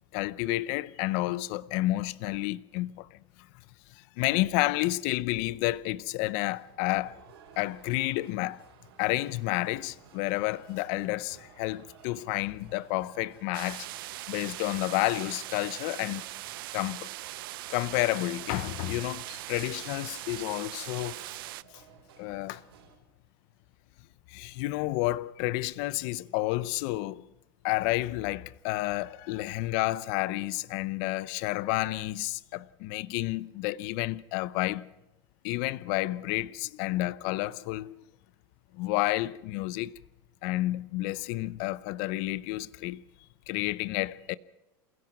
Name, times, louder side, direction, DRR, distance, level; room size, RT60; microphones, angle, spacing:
voice 1, 0.1-3.1 4.2-7.2 7.6-8.6 9.0-13.9 14.3-16.2 16.7-17.1 17.7-21.2 22.2-22.6 24.3-27.2 27.6-34.9 35.4-38.0 38.7-40.0 40.4-43.0 43.5-44.3, left 18 dB, 45° left, 0.6 m, -30 dB
sound 1, 6.4-23.0, right 7 dB, 85° right, 6.2 m, -57 dB
sound 2, 13.5-21.6, right 18 dB, 65° right, 0.7 m, -40 dB
28.5 x 16.0 x 6.0 m
supercardioid pair, 165°, 13 cm